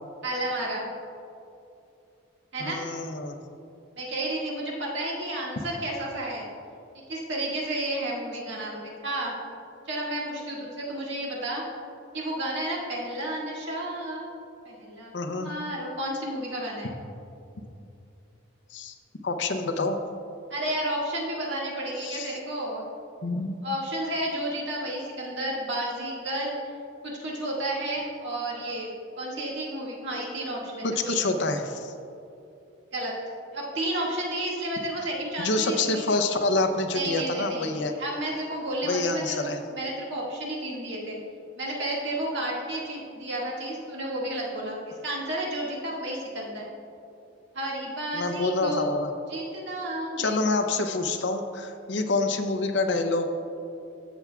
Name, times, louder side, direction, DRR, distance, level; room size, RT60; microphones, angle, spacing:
voice 1, 0.2-0.8 2.5-2.8 4.0-6.5 7.1-9.3 9.9-11.6 12.1-14.2 14.7-16.9 20.5-22.8 23.6-26.5 27.0-28.9 29.2-31.3 32.9-33.1 33.5-36.0 36.9-41.2 41.6-44.8 45.0-46.6 47.5-48.9 49.3-50.3, right 1 dB, 60° right, -4 dB, 1.9 m, -31 dB
voice 2, 2.6-3.4 15.1-15.5 18.7-18.9 19.2-20.0 22.0-22.4 23.2-23.6 30.8-31.9 35.4-38.0 38.8-39.6 48.1-49.1 50.2-53.3, left 3 dB, 60° left, 5 dB, 0.6 m, -27 dB
14.0 x 7.1 x 2.3 m, 2.6 s
head